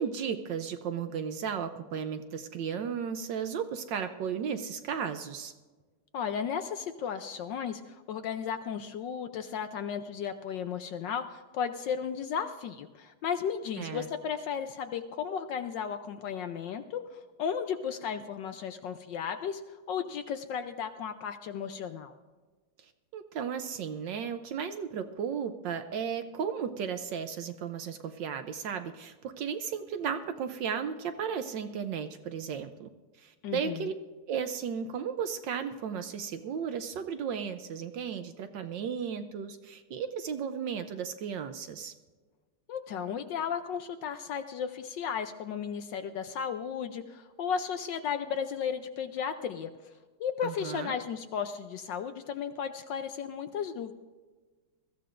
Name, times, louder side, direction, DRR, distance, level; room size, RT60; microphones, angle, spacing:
voice 1, 0.0-5.5 13.8-14.1 22.8-32.9 33.2-33.9 34.3-41.9 50.4-51.0, right 7 dB, 70° right, 9 dB, 1.2 m, -35 dB
voice 2, 6.1-22.1 33.4-33.9 42.7-49.7 50.2-53.9, left 7 dB, 70° left, 9 dB, 1.1 m, -34 dB
21.0 x 14.5 x 2.5 m, 1.3 s
omnidirectional pair, 2.4 m